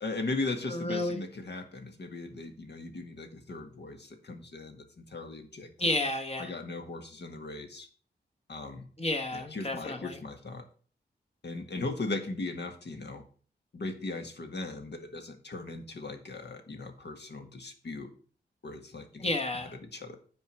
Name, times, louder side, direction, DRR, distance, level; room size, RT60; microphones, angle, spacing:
voice 1, 0.0-6.0 6.4-7.9 8.5-8.8 9.3-10.6 11.4-13.2 13.7-18.1 18.6-19.3 19.8-20.2, left 3 dB, 65° left, 5 dB, 1.6 m, -38 dB
voice 2, 0.7-1.2 5.8-6.5 9.0-10.2 19.2-19.7, left 2 dB, 35° left, 4 dB, 1.2 m, -31 dB
9.5 x 4.7 x 5.8 m, 0.43 s
wide cardioid pair, 100°, 19 cm